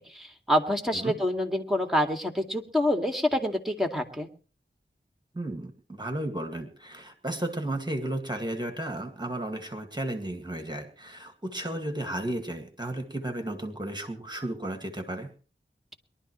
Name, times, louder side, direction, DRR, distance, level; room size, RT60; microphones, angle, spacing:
voice 1, 0.1-4.3, left 1 dB, ahead, 4 dB, 2.3 m, -27 dB
voice 2, 5.3-15.3, right 1 dB, 20° right, 5 dB, 2.1 m, -34 dB
23.0 x 12.0 x 3.2 m, 0.37 s
wide cardioid pair, 50°, 20 cm